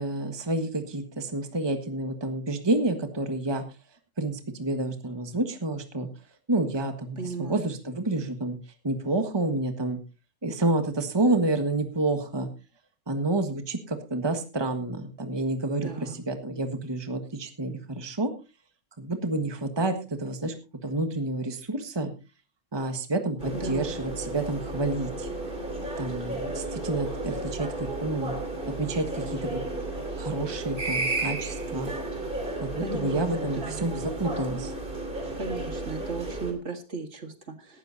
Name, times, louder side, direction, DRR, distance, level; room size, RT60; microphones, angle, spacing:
voice 1, 0.0-3.6 4.2-6.1 6.5-8.6 8.8-10.0 10.4-12.5 13.1-18.3 19.0-20.5 20.8-22.1 22.7-25.3 26.0-28.3 28.8-29.6 30.2-31.9 32.6-34.7, right 2 dB, 20° right, 7 dB, 1.5 m, -29 dB
voice 2, 7.2-7.6 15.8-16.2 23.5-23.9 32.8-33.8 35.4-37.8, right 3 dB, 55° right, 6 dB, 2.1 m, -35 dB
sound 1, 23.4-36.5, right 2 dB, 35° right, 3.3 m, -33 dB
18.0 x 12.5 x 2.7 m, 0.29 s
omnidirectional pair, 1.5 m